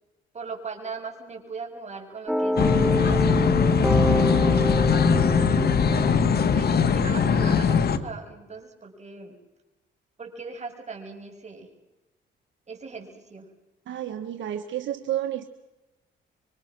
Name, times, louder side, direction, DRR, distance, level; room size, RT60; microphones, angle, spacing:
voice 1, 0.3-5.1 5.8-6.2 6.5-9.4 10.2-11.7 12.7-13.5, right 4 dB, 35° right, 2 dB, 6.7 m, -39 dB
sound 1, 2.3-7.8, equal, ahead, 1.8 m, -28 dB
sound 2, 2.6-8.0, left 6 dB, 50° left, 1.9 m, -21 dB
voice 2, 13.9-15.5, right 11 dB, 70° right, 7 dB, 1.5 m, -30 dB
26.5 x 24.5 x 6.2 m, 0.99 s
cardioid pair, 90°, 20 cm